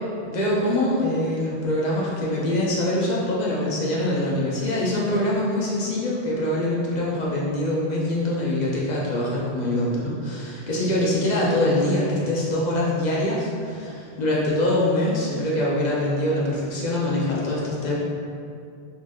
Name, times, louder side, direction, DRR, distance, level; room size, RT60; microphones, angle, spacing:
voice 1, 0.2-18.0, left 1 dB, 55° left, -5 dB, 0.5 m, -24 dB
3.3 x 2.6 x 2.2 m, 2.3 s
omnidirectional pair, 1.2 m